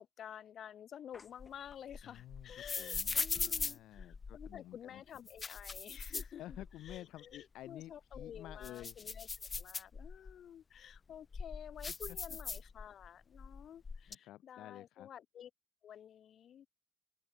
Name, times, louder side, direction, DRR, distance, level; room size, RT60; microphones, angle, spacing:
voice 1, 0.0-6.4 6.8-9.3 9.5-15.5 15.8-16.7, left 9 dB, 65° left, 2.3 m, -51 dB
sound 1, 1.1-4.6 5.2-7.0 7.3-7.4 7.9-10.3 10.9-13.1 13.3-14.1, left 4 dB, 35° left, 1.1 m, -41 dB
voice 2, 2.0-5.0 6.4-9.0 11.9-12.4 14.1-15.1, left 14 dB, 85° left, 0.9 m, -52 dB
cardioid pair, 90°, 0 cm